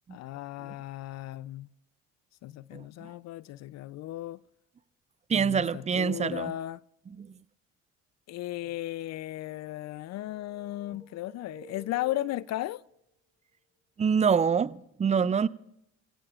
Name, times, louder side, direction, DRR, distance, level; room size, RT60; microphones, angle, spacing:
voice 1, 0.1-1.7 2.4-4.4 5.3-6.8 8.3-12.8, left 15 dB, 55° left, 0.5 m, -36 dB
voice 2, 2.7-3.1 5.3-6.5 7.2-7.3 14.0-15.5, right 6 dB, 25° right, 0.4 m, -26 dB
sound 1, 9.4-13.0, right 1 dB, 40° left, 2.3 m, -53 dB
23.5 x 17.0 x 2.4 m
supercardioid pair, 70°, 31 cm